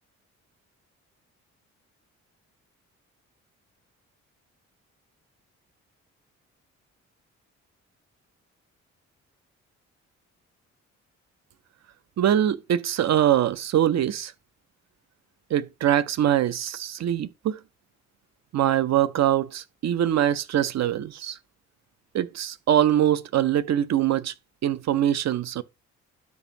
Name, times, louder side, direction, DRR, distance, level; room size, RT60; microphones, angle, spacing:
voice 1, 12.2-14.3 15.5-17.6 18.5-21.4 22.1-24.3 24.6-25.6, right 11 dB, 45° right, 0.6 m, -23 dB
12.0 x 4.9 x 2.9 m
figure-of-eight pair, 40°, 40 cm